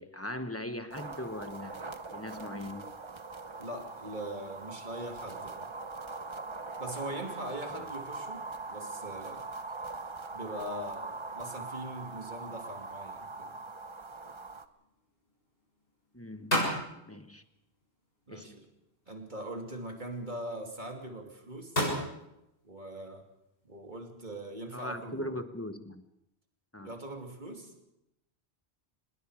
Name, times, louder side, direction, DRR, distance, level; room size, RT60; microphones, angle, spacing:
voice 1, 0.0-2.9 7.7-7.9 16.1-16.6 17.1-17.4 18.3-18.5 24.7-26.0 26.7-26.9, left 1 dB, 15° left, 8 dB, 1.2 m, -40 dB
sound 1, 0.9-14.7, right 3 dB, 30° right, 0.9 m, -42 dB
voice 2, 3.6-5.7 6.8-9.4 10.3-13.6 18.3-18.7 19.1-21.8 22.6-23.2 23.6-25.4 26.8-27.7, right 1 dB, 45° right, 2 dB, 3.0 m, -41 dB
sound 2, 12.6-25.3, equal, 60° left, 7.5 m, -40 dB
25.5 x 20.5 x 5.0 m, 0.86 s
omnidirectional pair, 1.1 m